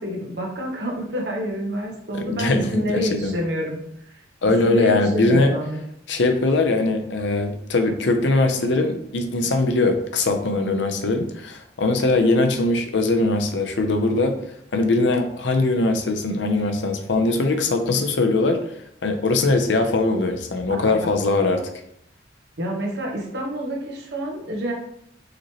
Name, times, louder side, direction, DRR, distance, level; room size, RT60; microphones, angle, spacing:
voice 1, 0.0-3.8 4.1-4.2 4.6-5.8 20.7-20.8 22.6-24.7, equal, 70° right, -1 dB, 1.1 m, -28 dB
voice 2, 2.1-3.3 4.4-5.5 6.1-14.4 14.7-18.6 19.0-21.7, left 2 dB, 90° left, 6 dB, 0.6 m, -21 dB
5.0 x 3.1 x 2.9 m, 0.73 s
head